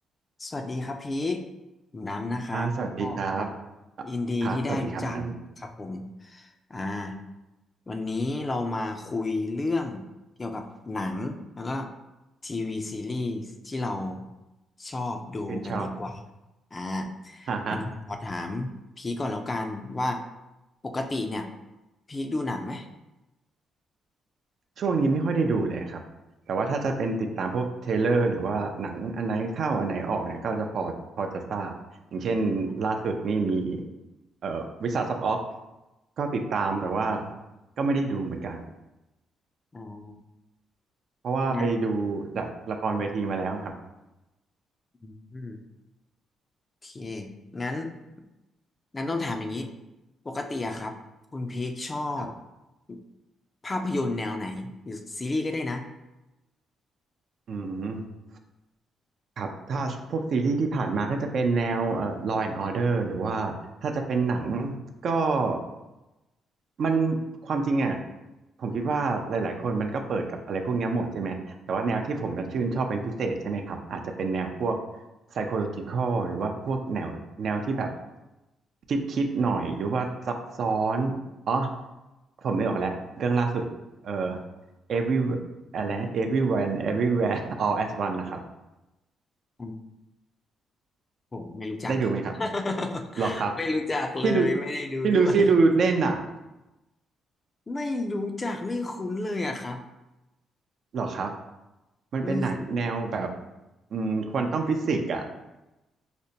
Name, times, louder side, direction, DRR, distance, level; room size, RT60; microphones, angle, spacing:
voice 1, 0.4-1.4 1.9-2.7 3.0-3.2 4.0-5.2 5.6-7.1 7.9-10.0 10.4-11.9 12.4-14.2 14.8-16.2 16.7-20.2 20.8-21.5 22.1-22.9 39.7-40.2 41.5-41.7 45.0-45.6 46.8-47.9 48.9-49.7 50.2-50.9 51.3-52.3 52.9-53.0 53.6-55.8 89.6-89.8 91.3-91.9 92.4-95.5 97.7-99.8 102.2-102.7, left 2 dB, 25° left, 5 dB, 0.4 m, -31 dB
voice 2, 2.5-3.5 4.4-5.3 15.5-15.9 17.5-17.8 24.8-26.0 26.5-31.7 32.1-33.8 34.4-35.4 36.2-37.3 37.8-38.6 41.2-43.7 52.2-52.3 57.5-58.0 59.4-63.5 63.8-64.8 65.0-65.6 66.8-68.0 68.6-71.4 71.7-74.8 75.3-77.9 78.9-81.1 81.5-81.7 82.4-83.7 84.0-84.4 84.9-85.4 85.7-88.4 91.9-92.3 93.2-93.5 94.2-94.5 95.0-96.2 100.9-101.3 102.1-103.3 103.9-105.2, right 4 dB, 60° right, 4 dB, 0.4 m, -27 dB
5.0 x 2.1 x 2.7 m, 0.99 s
cardioid pair, 90°, 0 cm